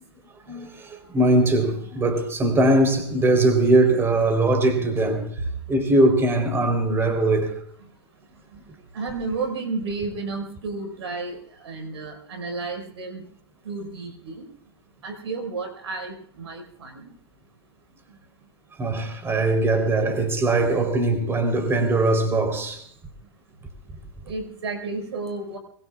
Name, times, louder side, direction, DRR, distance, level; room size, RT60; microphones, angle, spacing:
voice 1, 0.4-5.2 5.7-7.5 18.8-22.8, right 2 dB, 15° right, 3.8 m, -21 dB
voice 2, 8.9-11.4 11.6-13.2 13.6-14.5 15.0-17.1 24.3-25.6, right 3 dB, 85° right, 5.4 m, -32 dB
24.5 x 22.0 x 2.5 m
hypercardioid pair, 125°, 14 cm